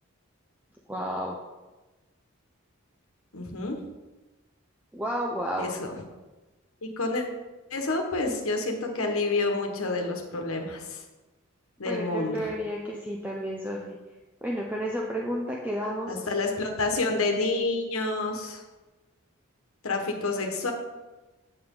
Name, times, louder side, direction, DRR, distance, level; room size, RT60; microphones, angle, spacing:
voice 1, 0.9-1.4 4.9-5.7 11.8-14.0 14.4-16.3, equal, 10° right, -2 dB, 0.6 m, -31 dB
voice 2, 3.3-3.8 5.6-6.0 6.8-7.2 7.7-11.0 11.8-12.4 16.1-18.6 19.8-20.7, left 3 dB, 85° left, 3 dB, 1.4 m, -28 dB
8.3 x 7.7 x 3.8 m, 1.2 s
head